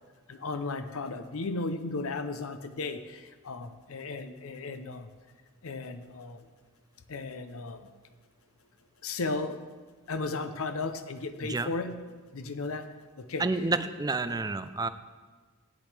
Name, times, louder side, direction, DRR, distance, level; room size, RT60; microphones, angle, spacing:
voice 1, 0.3-5.1 5.6-6.4 7.1-7.8 9.0-9.6 10.1-12.0 12.3-13.7, left 3 dB, 70° left, 10 dB, 0.7 m, -35 dB
voice 2, 13.4-14.9, right 3 dB, 15° right, 11 dB, 0.4 m, -29 dB
16.5 x 10.0 x 3.3 m, 1.4 s
head